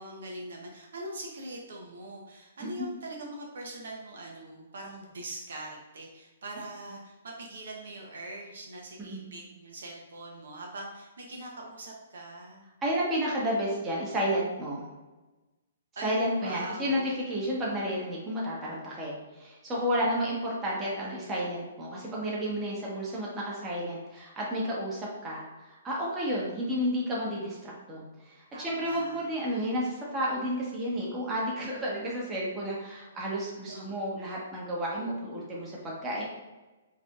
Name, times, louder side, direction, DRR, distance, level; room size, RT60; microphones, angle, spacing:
voice 1, 0.0-12.7 16.0-17.1 28.5-29.2 33.5-33.9, right 1 dB, 70° right, 0 dB, 0.7 m, -42 dB
voice 2, 12.8-14.9 16.0-36.2, equal, 20° right, -5 dB, 1.1 m, -31 dB
4.8 x 2.8 x 2.4 m, 1.1 s
hypercardioid pair, 135°, 0 cm